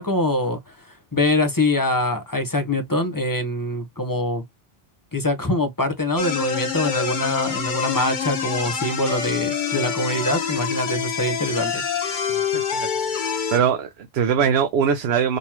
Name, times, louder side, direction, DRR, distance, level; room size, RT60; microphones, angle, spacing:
voice 1, 0.0-4.4 5.1-11.8, left 1 dB, 20° left, 0.8 m, -24 dB
sound 1, 6.2-13.6, left 7 dB, 50° left, 0.9 m, -26 dB
voice 2, 12.3-13.1 13.5-15.4, right 7 dB, 80° right, 0.9 m, -22 dB
3.8 x 3.0 x 2.8 m
omnidirectional pair, 1.0 m